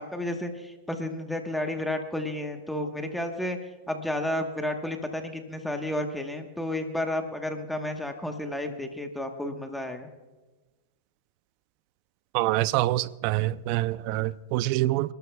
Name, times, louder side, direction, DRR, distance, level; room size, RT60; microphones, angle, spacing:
voice 1, 0.0-3.6 3.9-10.1, left 1 dB, 5° left, 1.2 m, -32 dB
voice 2, 12.3-15.1, right 16 dB, 50° right, 0.5 m, -26 dB
27.5 x 12.5 x 2.3 m
hypercardioid pair, 125°, 0 cm